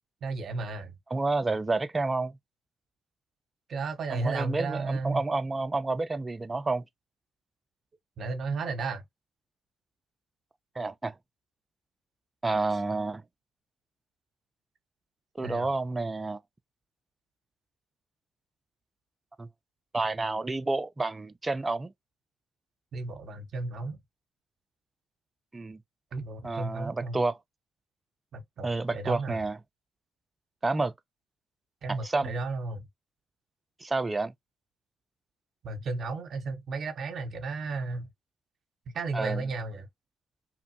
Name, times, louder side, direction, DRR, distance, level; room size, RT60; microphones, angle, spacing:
voice 1, 0.2-0.9 3.7-5.2 8.2-9.0 15.4-15.7 22.9-24.0 26.1-27.2 28.3-29.4 31.8-32.9 35.6-38.1 38.9-39.9, right 3 dB, 55° right, 0.8 m, -34 dB
voice 2, 1.1-2.4 4.1-6.8 10.8-11.1 12.4-13.2 15.4-16.4 19.4-19.5 19.9-21.9 25.5-25.8 26.4-27.4 28.6-29.6 30.6-30.9 31.9-32.3 33.8-34.3 39.1-39.4, right 3 dB, 25° right, 0.3 m, -29 dB
3.0 x 2.5 x 2.6 m
supercardioid pair, 60°, 0 cm